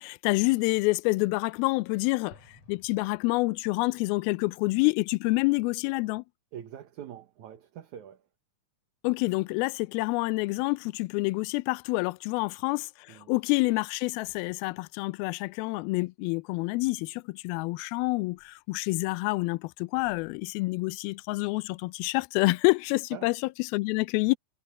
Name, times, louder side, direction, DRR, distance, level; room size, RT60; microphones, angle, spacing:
voice 1, 0.0-6.2 9.0-24.4, left 24 dB, 85° left, 2.4 m, -28 dB
Explosion, 2.3-4.0, left 3 dB, 45° left, 6.6 m, -57 dB
voice 2, 6.5-8.2 13.1-13.3 23.1-23.3, right 10 dB, 60° right, 2.4 m, -44 dB
omnidirectional pair, 4.4 m